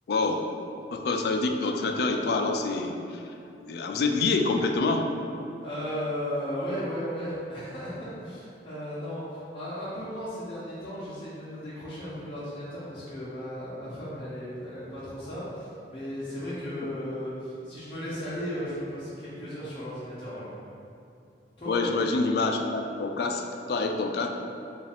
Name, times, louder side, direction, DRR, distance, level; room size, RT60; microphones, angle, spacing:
voice 1, 0.1-0.5 0.9-3.2 3.6-5.1 21.6-24.3, left 3 dB, 60° left, 4 dB, 0.3 m, -27 dB
voice 2, 5.6-20.5 21.6-21.9, equal, 30° left, -11 dB, 0.7 m, -35 dB
4.8 x 2.4 x 3.5 m, 2.6 s
head